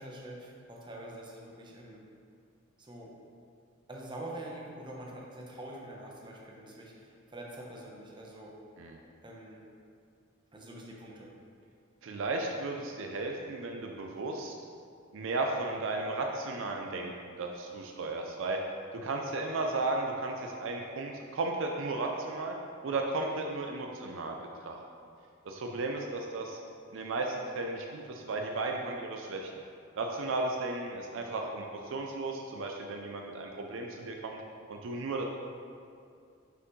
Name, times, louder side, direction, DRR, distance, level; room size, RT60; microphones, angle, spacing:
voice 1, 0.0-2.0 2.8-3.2 3.9-8.6 9.2-9.6 10.5-11.3, right 1 dB, 25° right, -2 dB, 0.9 m, -45 dB
voice 2, 12.0-14.5 15.1-17.1 17.4-18.6 18.9-22.5 22.8-24.8 25.5-26.6 26.9-29.5 30.0-34.4 34.7-35.2, right 2 dB, 65° right, 2 dB, 0.5 m, -34 dB
5.9 x 5.6 x 3.1 m, 2.4 s
head